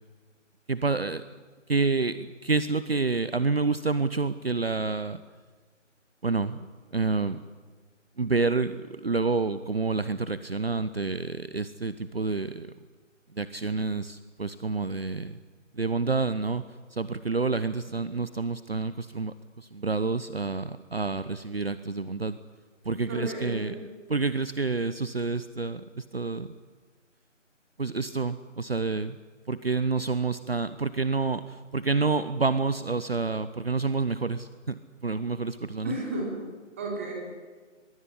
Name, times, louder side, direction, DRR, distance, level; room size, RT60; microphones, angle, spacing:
voice 1, 0.7-1.2 1.7-5.2 6.2-7.4 8.2-12.7 13.3-15.4 15.7-16.6 16.9-22.4 22.8-26.5 27.8-29.2 29.5-34.7 35.0-35.9, right 4 dB, 50° right, 14 dB, 1.0 m, -28 dB
voice 2, 23.1-23.8 35.8-36.4 36.8-37.1, right 1 dB, 10° right, -2 dB, 3.6 m, -33 dB
22.0 x 22.0 x 10.0 m, 1.4 s
figure-of-eight pair, 175°, 38 cm